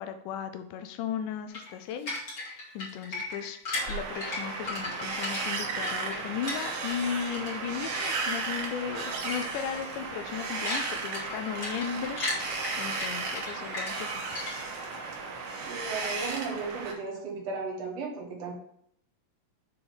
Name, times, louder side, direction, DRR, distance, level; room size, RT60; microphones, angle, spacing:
voice 1, 0.0-3.6 3.9-14.4, left 8 dB, 85° left, 8 dB, 2.1 m, -36 dB
sound 1, 1.5-7.0 7.3-8.5 8.9-9.1 9.4-9.6 10.0-14.8, left 2 dB, 35° left, 2.9 m, -36 dB
Wind, 3.7-16.9, right 4 dB, 85° right, 2.8 m, -35 dB
voice 2, 15.7-18.5, right 4 dB, 55° right, -1 dB, 2.7 m, -35 dB
6.8 x 4.6 x 5.4 m, 0.69 s
omnidirectional pair, 3.6 m